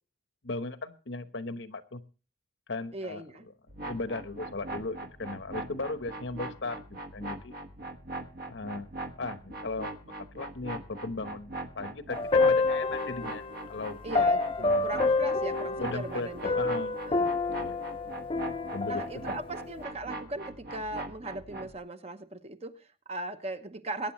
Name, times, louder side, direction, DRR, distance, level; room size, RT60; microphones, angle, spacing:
voice 1, 0.4-2.0 2.7-3.2 3.8-7.5 8.5-8.9 9.2-13.4 13.7-14.0 14.6-14.9 15.8-17.0 17.5-17.8 18.7-19.4, left 3 dB, 70° left, 10 dB, 1.1 m, -37 dB
voice 2, 2.9-3.4 14.0-16.6 17.1-17.3 18.8-24.1, right 1 dB, 35° right, 8 dB, 0.9 m, -38 dB
sound 1, 3.7-21.8, right 2 dB, 50° right, 1.3 m, -41 dB
sound 2, 12.1-13.5 14.2-16.2 16.4-19.4, left 3 dB, 30° left, 0.7 m, -27 dB
22.0 x 9.7 x 3.1 m, 0.35 s
head